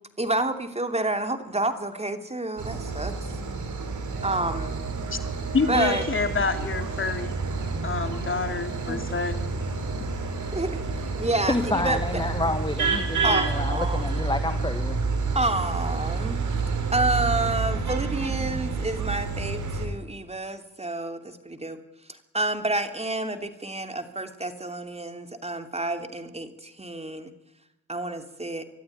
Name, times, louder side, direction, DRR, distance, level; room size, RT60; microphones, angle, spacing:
voice 1, 0.2-3.1 4.2-4.9 5.7-6.0 8.9-9.1 10.5-10.7 11.0-12.0 13.2-14.1 15.3-16.4 16.9-21.8 22.1-27.3 27.9-28.6, right 2 dB, 20° right, 7 dB, 2.9 m, -29 dB
sound 1, 2.6-19.9, right 4 dB, 60° right, 4.7 m, -29 dB
sound 2, 4.1-12.6, right 5 dB, 40° right, 3.7 m, -39 dB
voice 2, 5.5-7.3 7.8-9.4, left 4 dB, 35° left, 7 dB, 2.8 m, -27 dB
voice 3, 11.5-15.0, left 2 dB, 15° left, 10 dB, 1.5 m, -29 dB
23.5 x 14.5 x 9.5 m, 0.92 s
supercardioid pair, 55°, 33 cm